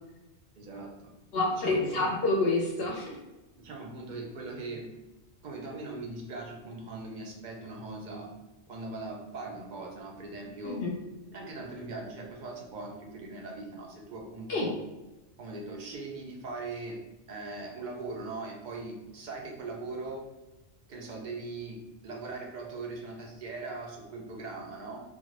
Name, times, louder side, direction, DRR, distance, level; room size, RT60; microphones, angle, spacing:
voice 1, 0.6-1.1 1.5-2.1 3.6-4.9 5.4-8.3 8.7-10.8 11.3-14.8 15.4-20.2 20.9-25.0, right 3 dB, 50° right, 1 dB, 0.6 m, -40 dB
voice 2, 1.3-3.2 10.6-10.9 14.5-14.7, left 2 dB, 65° left, -1 dB, 0.7 m, -28 dB
3.1 x 2.1 x 3.1 m, 1.0 s
omnidirectional pair, 1.2 m